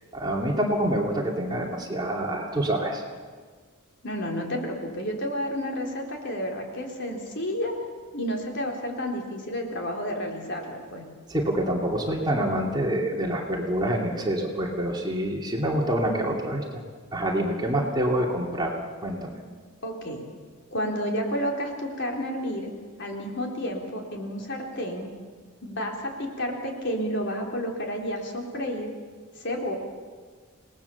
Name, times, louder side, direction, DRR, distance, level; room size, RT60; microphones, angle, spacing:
voice 1, 0.1-3.0 11.3-16.8 17.1-19.4, right 1 dB, 20° right, -1 dB, 2.7 m, -26 dB
voice 2, 4.0-7.7 8.1-11.1 19.8-20.2 20.7-22.7 23.0-25.1 25.6-28.9 29.4-29.7, equal, 55° left, 1 dB, 3.9 m, -31 dB
27.5 x 19.0 x 7.0 m, 1.5 s
head